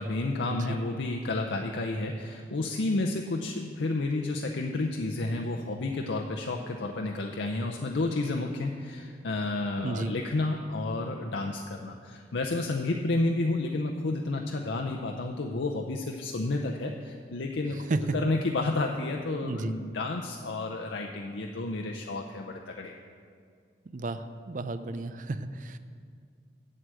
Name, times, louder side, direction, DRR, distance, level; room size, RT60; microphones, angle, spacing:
voice 1, 0.0-22.9, left 2 dB, 90° left, 2 dB, 0.6 m, -31 dB
voice 2, 9.8-10.1 17.9-18.2 19.4-19.7 23.9-25.8, right 2 dB, 45° right, 11 dB, 0.5 m, -32 dB
8.0 x 7.7 x 7.6 m, 2.2 s
head